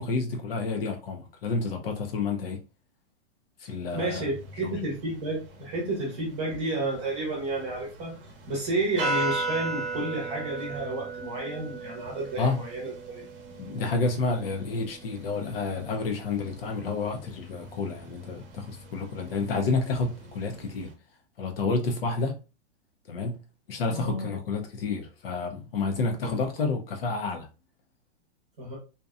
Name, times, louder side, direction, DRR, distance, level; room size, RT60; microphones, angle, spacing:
voice 1, 0.0-2.6 3.6-4.3 4.6-4.7 12.4-12.6 13.6-20.9 21.4-22.4 23.1-23.4 23.7-27.5, left 3 dB, 55° left, 0.5 m, -29 dB
voice 2, 3.9-8.1 8.5-13.2 23.9-24.3 26.2-26.3 28.6-28.8, right 2 dB, 15° right, 0.9 m, -31 dB
sound 1, 3.9-20.9, right 3 dB, 50° right, 0.7 m, -38 dB
2.7 x 2.1 x 2.3 m
hypercardioid pair, 175°, 35 cm